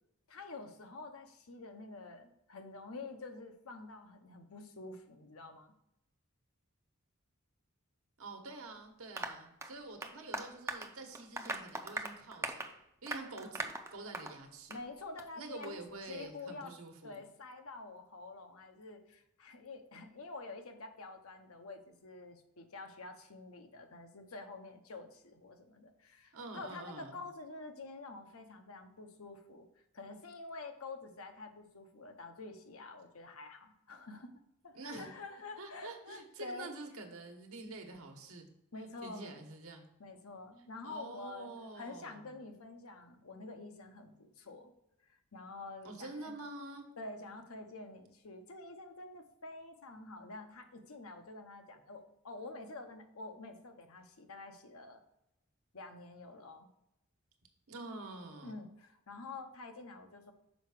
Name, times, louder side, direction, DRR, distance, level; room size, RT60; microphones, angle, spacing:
voice 1, 0.3-5.7 13.2-13.3 14.7-15.8 16.1-16.7 17.0-29.7 29.9-34.3 34.6-36.7 38.7-39.4 40.0-41.5 41.8-44.7 45.0-46.3 47.0-55.0 55.7-56.7 58.4-60.3, left 3 dB, 75° left, 6 dB, 0.9 m, -48 dB
voice 2, 8.2-12.7 13.0-14.8 15.4-17.2 26.3-27.2 34.7-35.1 35.6-38.5 38.8-39.9 40.8-42.3 45.8-46.9 57.7-58.6, right 2 dB, 75° right, 4 dB, 1.2 m, -47 dB
Applause, 9.2-14.4 14.7-14.8 15.2-15.3 15.6-15.7, right 2 dB, 15° right, 0.5 m, -41 dB
6.4 x 4.7 x 4.9 m, 0.83 s
head